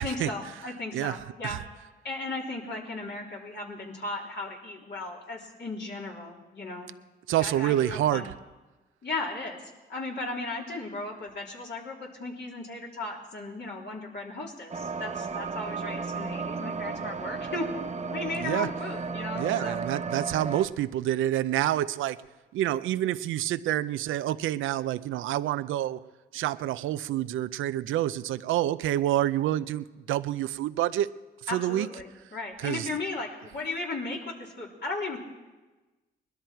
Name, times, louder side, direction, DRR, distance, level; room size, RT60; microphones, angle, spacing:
voice 1, 0.0-1.6 2.0-6.9 7.4-8.3 9.0-9.6 9.9-17.7 18.0-19.8 31.5-35.2, left 2 dB, 60° left, -2 dB, 3.7 m, -36 dB
voice 2, 7.3-8.3 18.4-18.7 19.3-22.2 22.5-26.0 26.3-31.1 31.4-31.9 32.6-32.9, right 13 dB, 90° right, 13 dB, 0.5 m, -28 dB
sound 1, 14.7-20.7, right 4 dB, 35° right, 1.2 m, -34 dB
21.0 x 12.5 x 4.5 m, 1.2 s
supercardioid pair, 60°, 20 cm